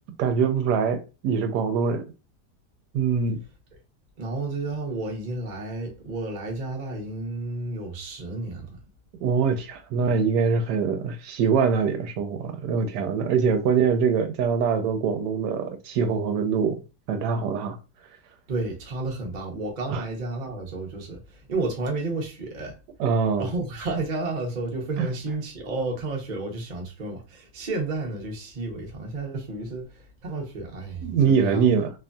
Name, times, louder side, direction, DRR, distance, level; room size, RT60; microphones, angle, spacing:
voice 1, 0.2-2.0 2.9-3.4 9.2-16.8 17.1-17.8 19.9-20.0 23.0-23.5 25.0-25.1 31.0-31.9, right 6 dB, 80° right, 1.1 m, -23 dB
voice 2, 4.2-8.8 18.5-22.8 23.4-31.7, right 2 dB, 45° right, 0.6 m, -31 dB
3.0 x 2.5 x 2.2 m
omnidirectional pair, 1.8 m